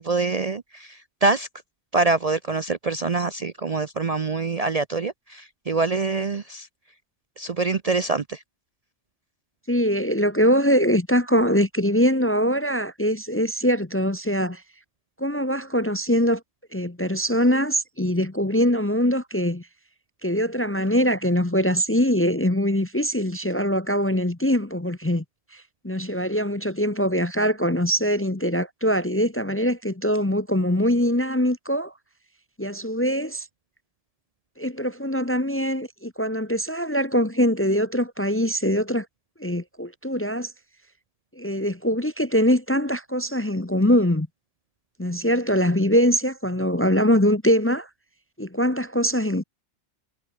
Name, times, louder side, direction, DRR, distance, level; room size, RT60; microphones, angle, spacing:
voice 1, 0.0-1.5 1.9-6.7 7.4-8.4, right 3 dB, 40° right, 0.7 m, -25 dB
voice 2, 9.7-14.6 15.2-16.4 16.7-19.7 20.2-25.2 25.5-31.9 32.6-33.5 34.6-39.1 39.4-40.5 41.4-44.3 45.0-47.9 48.4-49.4, equal, 15° left, 0.7 m, -23 dB
omnidirectional pair, 1.2 m